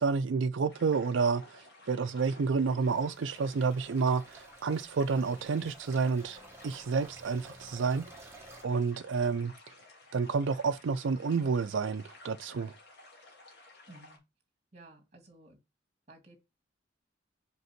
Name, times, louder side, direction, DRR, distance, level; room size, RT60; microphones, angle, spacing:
voice 1, 0.0-1.6 1.9-6.4 6.6-8.0 8.6-9.5 10.1-12.7, right 5 dB, 90° right, 0.4 m, -29 dB
sound 1, 0.7-14.2, left 2 dB, 60° left, 2.5 m, -55 dB
sound 2, 2.8-8.6, right 2 dB, 15° right, 1.6 m, -53 dB
voice 2, 13.9-14.2 14.7-15.6 16.1-16.4, right 2 dB, 35° right, 2.2 m, -54 dB
5.5 x 5.2 x 5.8 m
head